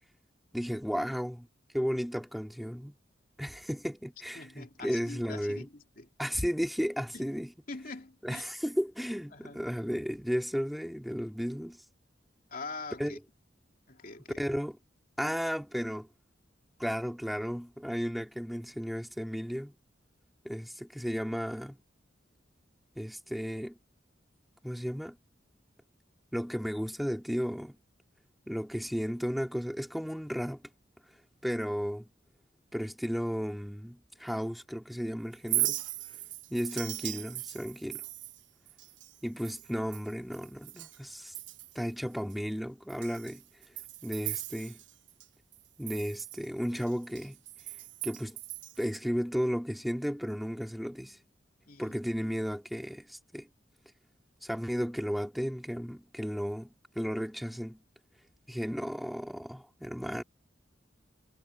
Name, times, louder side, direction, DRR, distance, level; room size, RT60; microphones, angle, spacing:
voice 1, 0.5-1.5 1.7-2.9 3.4-5.7 6.2-7.5 8.2-11.8 13.0-13.2 14.4-14.8 15.2-16.1 16.8-19.7 20.4-21.8 23.0-23.8 24.6-25.2 26.3-27.8 28.5-30.6 31.4-32.1 32.7-35.8 36.5-38.0 39.2-41.3 41.7-43.4 44.0-44.8 45.8-47.4 48.0-48.4 48.8-51.2 51.8-53.5 54.4-56.7 57.0-57.8 58.5-60.2, equal, ahead, 2.5 m, -34 dB
voice 2, 4.3-6.1 7.1-7.3 7.7-8.5 9.3-9.7 12.5-13.2 13.9-14.4 51.7-51.9, left 3 dB, 50° left, 2.8 m, -44 dB
Chink clink, 35.3-41.0 41.3-41.9 42.3-42.4 42.9-45.3 45.5-49.0, right 16 dB, 75° right, 1.2 m, -38 dB
head